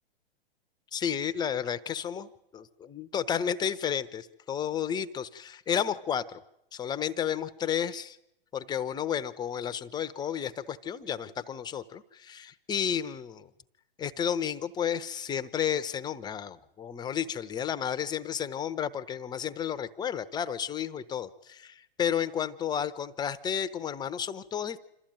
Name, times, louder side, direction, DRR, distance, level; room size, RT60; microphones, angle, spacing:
voice 1, 0.9-6.4 6.7-8.2 8.5-13.5 14.0-24.8, left 8 dB, 15° left, 11 dB, 0.7 m, -32 dB
27.0 x 13.5 x 9.0 m, 0.85 s
hypercardioid pair, 125°, 31 cm